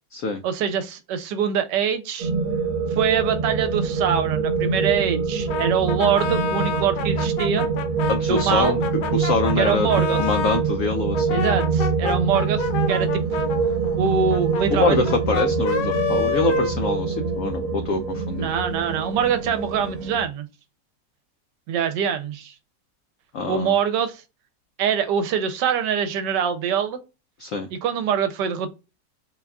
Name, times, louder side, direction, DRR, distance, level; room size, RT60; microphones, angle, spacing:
voice 1, 0.4-2.3 3.0-7.7 8.3-8.8 9.6-10.2 11.3-13.4 14.0-15.2 18.4-20.5 21.7-22.5 23.5-24.2 24.8-27.0 27.7-28.7, right 7 dB, 80° right, 1.2 m, -24 dB
sound 1, 2.2-20.2, right 5 dB, 60° right, 1.0 m, -25 dB
Brass instrument, 5.5-10.7 11.1-17.4, left 6 dB, 70° left, 1.2 m, -29 dB
voice 2, 8.1-8.8 9.1-9.9 10.2-11.4 14.7-18.5 23.3-23.7 27.4-27.7, left 3 dB, 90° left, 0.7 m, -24 dB
3.9 x 2.3 x 3.4 m
omnidirectional pair, 1.9 m